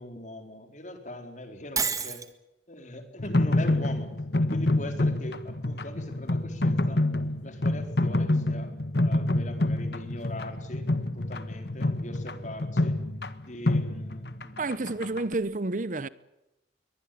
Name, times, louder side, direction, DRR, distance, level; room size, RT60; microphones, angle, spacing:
voice 1, 0.0-2.2 2.7-4.1 4.4-7.0 7.4-8.7 9.0-10.9 11.1-13.0 13.5-14.7, left 1 dB, 40° left, 4.2 m, -41 dB
Shatter, 1.8-2.3, right 6 dB, 20° right, 1.7 m, -28 dB
sound 1, 3.2-15.3, left 1 dB, 60° left, 1.5 m, -27 dB
voice 2, 14.6-16.1, right 2 dB, 45° right, 0.8 m, -30 dB
23.5 x 19.5 x 8.7 m
head